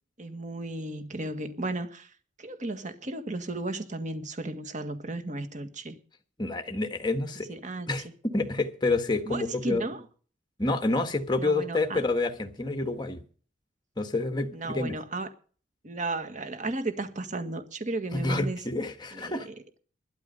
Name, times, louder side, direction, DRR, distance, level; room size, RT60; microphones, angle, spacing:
voice 1, 0.2-2.1 2.4-6.0 7.5-7.9 9.3-10.0 11.4-12.0 14.5-15.3 15.8-18.6 19.1-19.6, right 2 dB, 45° right, 1.8 m, -34 dB
voice 2, 6.4-7.5 7.9-9.8 10.6-13.2 14.0-14.9 18.1-19.5, left 2 dB, 25° left, 1.5 m, -28 dB
12.5 x 12.0 x 5.4 m
head